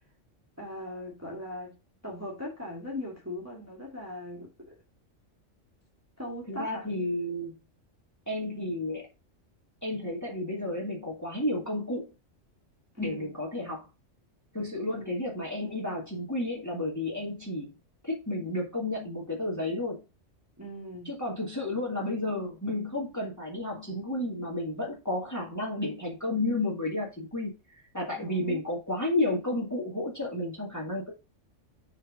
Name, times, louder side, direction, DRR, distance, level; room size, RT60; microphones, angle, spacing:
voice 1, 0.6-1.8 2.0-4.8 6.2-6.9 12.9-13.3 15.0-15.1 20.6-21.1 28.2-28.6, left 1 dB, 10° right, 2.0 m, -39 dB
voice 2, 6.5-7.6 8.3-9.1 9.8-12.1 13.0-13.9 14.5-17.7 18.0-20.0 21.1-27.5 27.9-31.1, left 1 dB, 15° left, 2.0 m, -32 dB
6.5 x 3.9 x 4.9 m
omnidirectional pair, 1.3 m